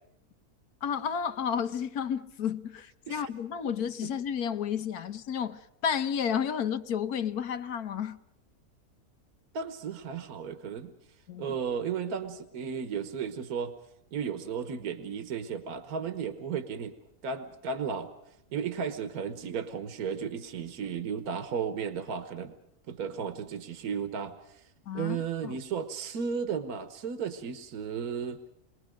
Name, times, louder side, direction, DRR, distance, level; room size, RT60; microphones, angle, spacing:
voice 1, 0.8-8.2 11.3-11.6 24.9-25.2 25.4-25.5, left 8 dB, 80° left, 1.6 m, -31 dB
voice 2, 9.5-10.9 11.4-13.7 14.1-16.9 17.2-18.1 18.5-22.5 22.9-24.6 24.9-28.4, right 6 dB, 75° right, 1.6 m, -34 dB
28.5 x 22.0 x 5.1 m
omnidirectional pair, 1.6 m